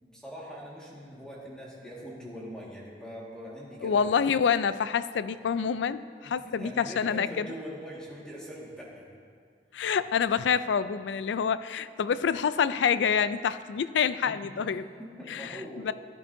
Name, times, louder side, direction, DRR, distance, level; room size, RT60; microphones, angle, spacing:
voice 1, 0.0-4.0 6.2-9.1 14.2-15.9, equal, 5° left, -5 dB, 1.8 m, -42 dB
voice 2, 3.8-7.5 9.7-14.9 15.3-15.5 15.8-15.9, left 7 dB, 90° left, 14 dB, 0.4 m, -27 dB
15.0 x 11.0 x 2.7 m, 2.1 s
head